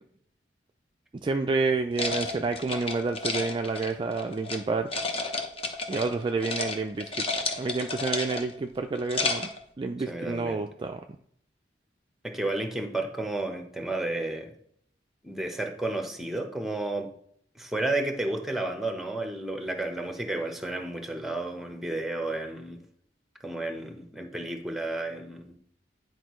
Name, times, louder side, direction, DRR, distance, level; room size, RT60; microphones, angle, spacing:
voice 1, 1.2-4.9 5.9-7.2 7.6-9.5 9.8-11.0, right 3 dB, 30° right, 5 dB, 0.3 m, -29 dB
sound 1, 1.9-4.6 4.9-6.1 6.4-6.7 7.0-8.6 8.9-9.6, left 3 dB, 35° left, 0.8 m, -31 dB
voice 2, 10.1-10.7 12.2-14.5 15.2-17.1 17.5-22.8 23.4-25.6, right 2 dB, ahead, 4 dB, 0.9 m, -32 dB
10.0 x 4.6 x 3.1 m, 0.66 s
head